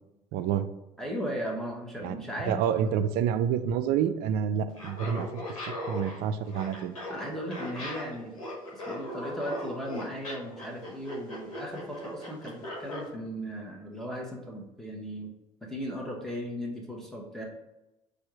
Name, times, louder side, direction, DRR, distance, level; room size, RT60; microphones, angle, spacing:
voice 1, 0.3-0.7 2.0-2.1 2.5-5.3 5.9-7.0, right 8 dB, 65° right, 11 dB, 0.4 m, -28 dB
voice 2, 1.0-2.9 7.1-8.4 8.7-15.3 15.6-17.4, equal, ahead, -2 dB, 1.4 m, -37 dB
Laughter, 4.7-13.1, left 1 dB, 90° left, 1.4 m, -38 dB
4.3 x 2.6 x 4.8 m, 0.95 s
hypercardioid pair, 60°, 17 cm